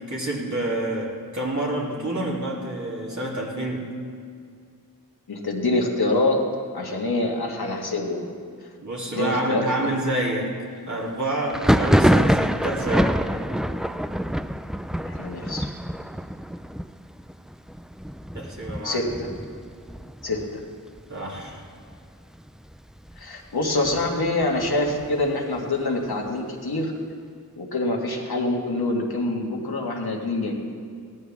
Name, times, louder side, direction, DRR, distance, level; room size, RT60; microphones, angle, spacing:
voice 1, 0.0-3.9 8.8-13.2 18.3-19.0 21.1-21.6, right 1 dB, 50° right, -4 dB, 2.9 m, -28 dB
voice 2, 5.3-6.4 6.7-8.2 8.6-8.7 9.1-9.9 15.0-15.7 18.8-19.3 20.2-20.4 23.2-26.9 27.6-30.5, left 2 dB, 85° left, -1 dB, 1.8 m, -25 dB
Thunder, 11.5-21.0 21.3-22.0 22.2-23.2 23.6-25.3, equal, ahead, 0.4 m, -25 dB
17.5 x 14.0 x 3.6 m, 2.2 s
wide cardioid pair, 50°, 37 cm